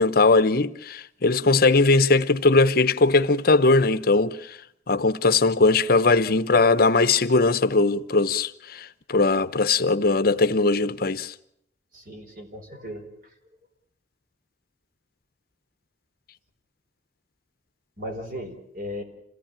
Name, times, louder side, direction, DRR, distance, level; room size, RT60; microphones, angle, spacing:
voice 1, 0.0-4.6 4.9-11.3, left 3 dB, 55° left, 0.9 m, -20 dB
voice 2, 11.9-13.0 18.0-19.0, equal, 50° right, 4.7 m, -36 dB
27.5 x 17.0 x 8.9 m
head